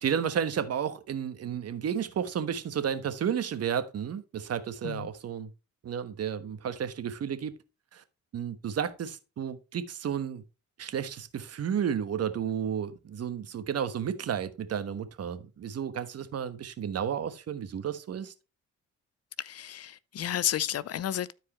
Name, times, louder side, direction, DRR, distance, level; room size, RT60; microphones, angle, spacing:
voice 1, 0.0-5.5 5.8-7.5 7.9-8.0 8.3-10.4 10.8-18.3, right 8 dB, 55° right, 1.3 m, -32 dB
voice 2, 19.4-21.3, left 11 dB, 55° left, 0.7 m, -32 dB
13.0 x 4.7 x 3.1 m
cardioid pair, 90°, 30 cm